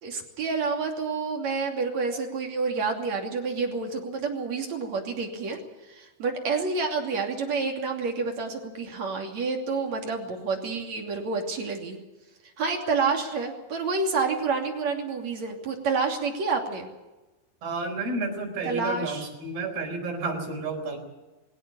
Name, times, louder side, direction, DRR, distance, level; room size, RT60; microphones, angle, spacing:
voice 1, 0.0-5.6 5.9-12.0 12.6-16.9 18.6-19.3, right 4 dB, 50° right, 2 dB, 3.8 m, -29 dB
voice 2, 17.6-21.0, right 3 dB, 75° right, 2 dB, 6.2 m, -31 dB
21.5 x 17.5 x 8.6 m, 1.1 s
omnidirectional pair, 4.4 m